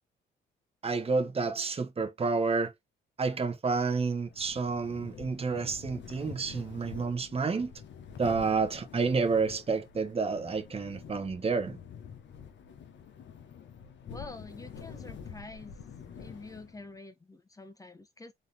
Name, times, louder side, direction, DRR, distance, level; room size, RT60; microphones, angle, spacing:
voice 1, 0.8-2.7 3.2-7.7 8.2-11.8, right 4 dB, 30° right, 1.1 m, -30 dB
sound 1, 4.2-16.9, left 7 dB, 65° left, 1.2 m, -47 dB
voice 2, 14.1-15.7 16.1-18.3, left 3 dB, 15° left, 1.1 m, -47 dB
4.1 x 3.8 x 3.4 m
cardioid pair, 90°, 20 cm